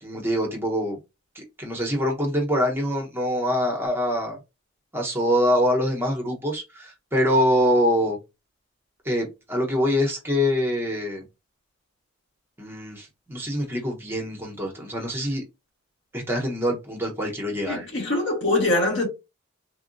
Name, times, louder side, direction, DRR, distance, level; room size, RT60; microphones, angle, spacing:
voice 1, 0.0-1.0 1.3-4.4 4.9-8.2 9.0-11.2 12.6-15.4 16.1-17.9, equal, 10° right, 0.7 m, -24 dB
voice 2, 17.7-19.1, left 2 dB, 60° left, 1.3 m, -23 dB
3.6 x 2.1 x 2.5 m
head